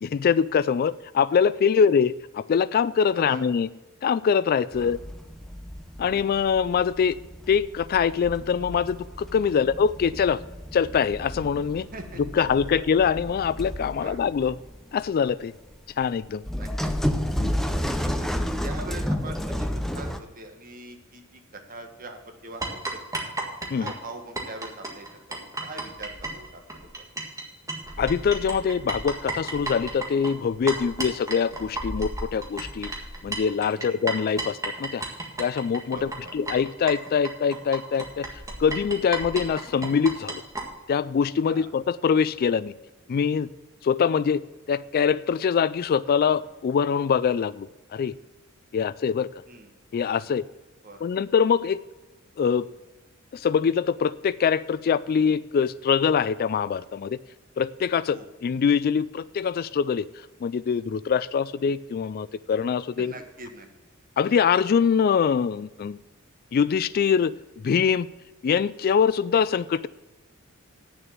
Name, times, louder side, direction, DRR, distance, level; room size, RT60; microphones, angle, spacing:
voice 1, 0.0-3.7 4.0-5.0 6.0-7.2 7.5-10.4 10.7-11.9 12.3-14.6 14.9-15.5 16.0-16.4 17.4-17.6 23.7-23.9 28.0-32.9 33.2-35.0 35.4-36.0 36.3-38.3 38.6-40.4 40.9-42.7 43.1-43.5 43.8-44.4 44.7-48.1 48.7-49.3 49.9-50.4 51.0-51.8 52.4-52.7 53.3-57.2 57.6-60.1 60.4-63.1 64.2-66.0 66.5-68.1 68.4-69.9, left 6 dB, 45° left, 18 dB, 0.3 m, -23 dB
voice 2, 3.1-3.4 4.8-5.0 9.5-9.7 11.9-12.8 14.0-14.2 16.5-16.9 18.2-18.3 18.6-23.0 23.7-26.9 33.7-34.0 35.9-36.3 41.5-41.7 48.8-48.9 49.5-49.7 50.8-51.2 58.1-58.3 63.0-63.7, right 2 dB, 40° right, 5 dB, 1.6 m, -42 dB
sound 1, 4.7-20.2, equal, ahead, 0.6 m, -32 dB
sound 2, 22.6-27.4 27.7-40.6, right 2 dB, 15° right, 1.7 m, -33 dB
8.8 x 6.9 x 7.3 m, 1.1 s
head